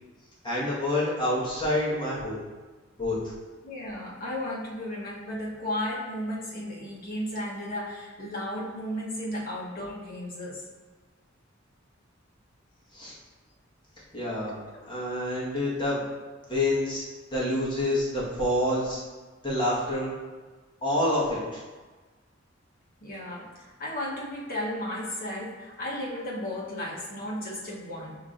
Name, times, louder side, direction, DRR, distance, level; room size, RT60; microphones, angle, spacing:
voice 1, 0.4-2.4 3.0-3.2 12.9-13.1 14.1-14.5 14.9-16.0 16.5-17.0 17.3-19.0 19.4-20.1 20.8-21.6, left 1 dB, 25° left, -9 dB, 1.5 m, -27 dB
voice 2, 3.6-10.6 14.7-14.8 23.0-28.2, left 1 dB, 50° left, -5 dB, 1.1 m, -34 dB
5.1 x 3.7 x 2.6 m, 1.3 s
head